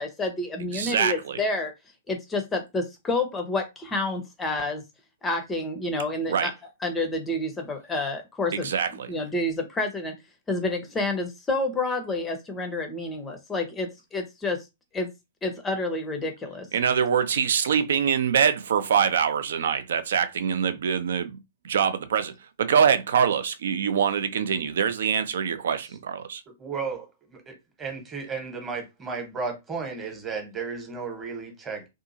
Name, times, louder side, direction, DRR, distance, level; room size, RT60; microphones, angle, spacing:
voice 1, 0.0-1.7 2.1-4.8 5.2-6.5 6.8-10.1 10.5-14.6 14.9-15.1 15.4-16.7, left 2 dB, 15° left, 0.6 m, -29 dB
voice 2, 0.7-1.4 6.3-6.5 8.5-9.1 16.7-21.4 21.6-22.3 22.6-26.4, right 7 dB, 60° right, 0.4 m, -24 dB
voice 3, 26.5-31.9, right 5 dB, 20° right, 1.0 m, -34 dB
2.6 x 2.4 x 2.7 m
figure-of-eight pair, 110°, 0 cm